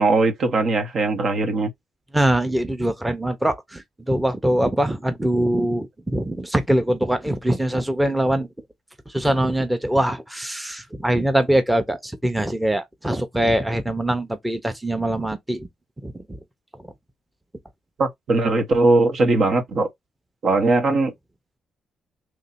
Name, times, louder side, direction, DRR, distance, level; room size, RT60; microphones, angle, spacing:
voice 1, 0.0-1.7 18.0-19.9 20.4-21.1, right 3 dB, 65° right, 1.2 m, -19 dB
voice 2, 2.1-8.5 9.1-15.7 16.0-16.4, right 1 dB, 10° right, 0.9 m, -23 dB
3.1 x 2.7 x 4.2 m
supercardioid pair, 65°, 0 cm